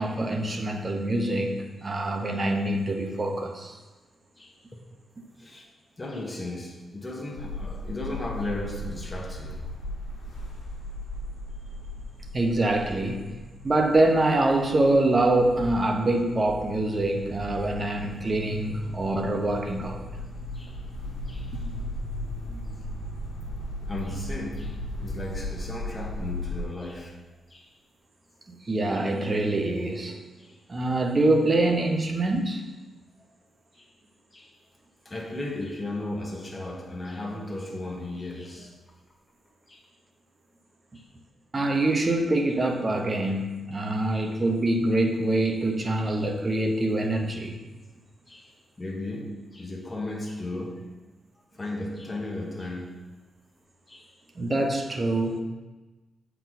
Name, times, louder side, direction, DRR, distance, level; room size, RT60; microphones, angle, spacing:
voice 1, 0.0-3.8 12.3-13.3 13.6-20.0 22.5-22.6 28.5-30.2 30.7-32.7 41.5-47.6 54.4-55.4, right 2 dB, 30° right, 1.0 m, -25 dB
voice 2, 4.4-4.8 5.4-5.7 6.0-9.6 20.5-20.8 21.3-21.6 23.9-27.2 27.5-27.7 28.9-29.0 30.4-30.6 33.7-33.9 34.3-34.5 35.0-38.8 39.7-39.8 40.9-41.0 48.3-51.0 51.6-53.0 53.9-54.1, left 2 dB, 20° left, 1.4 m, -36 dB
sound 1, 7.4-26.6, left 1 dB, 75° left, 1.3 m, -37 dB
7.8 x 4.7 x 4.1 m
cardioid pair, 90°, 0 cm